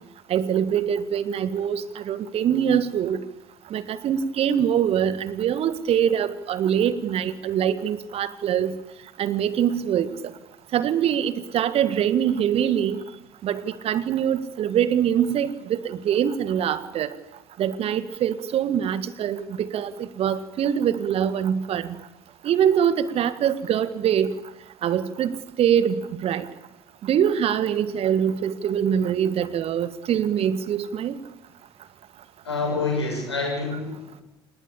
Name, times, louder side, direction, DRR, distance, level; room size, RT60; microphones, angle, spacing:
voice 1, 0.3-3.2 3.7-8.8 9.2-10.3 10.7-13.0 13.4-17.2 17.6-22.0 22.4-24.4 24.8-26.5 27.0-31.2, right 9 dB, 45° right, 15 dB, 1.7 m, -24 dB
voice 2, 32.4-34.2, left 3 dB, 80° left, 0 dB, 7.5 m, -27 dB
28.5 x 19.5 x 8.8 m, 0.92 s
figure-of-eight pair, 55°, 14 cm